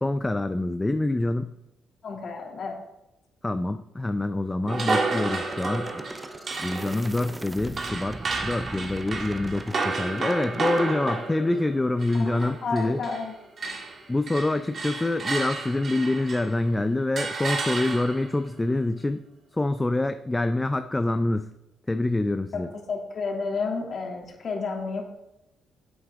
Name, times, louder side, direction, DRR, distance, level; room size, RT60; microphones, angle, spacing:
voice 1, 0.0-1.5 3.4-5.9 6.6-8.2 8.4-13.1 14.1-19.2 19.5-21.5 21.9-22.7, left 2 dB, 15° left, 10 dB, 0.5 m, -26 dB
voice 2, 2.0-2.8 12.2-13.3 22.5-22.6 22.9-25.0, left 4 dB, 55° left, 0 dB, 2.5 m, -31 dB
sound 1, 4.7-13.3 13.6-16.6 17.2-18.4, right 3 dB, 45° right, 1.9 m, -31 dB
sound 2, 5.4-10.9, right 2 dB, 15° right, 0.7 m, -40 dB
10.5 x 8.0 x 3.7 m, 0.88 s
cardioid pair, 90°, 0 cm